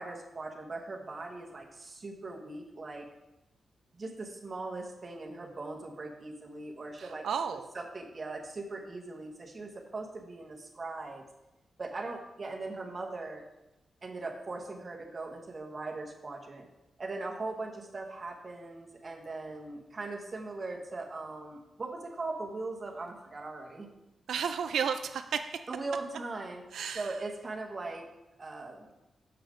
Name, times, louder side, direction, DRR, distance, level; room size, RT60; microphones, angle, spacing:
voice 1, 0.0-3.1 4.0-11.2 11.8-13.4 14.0-16.7 17.0-23.9 25.7-26.6 26.9-28.1 28.4-28.9, right 3 dB, 30° right, 1 dB, 1.1 m, -40 dB
voice 2, 7.0-7.7 24.3-25.4 26.7-27.1, right 7 dB, 90° right, 8 dB, 0.3 m, -32 dB
6.9 x 5.6 x 5.0 m, 0.94 s
wide cardioid pair, 170°, 0 cm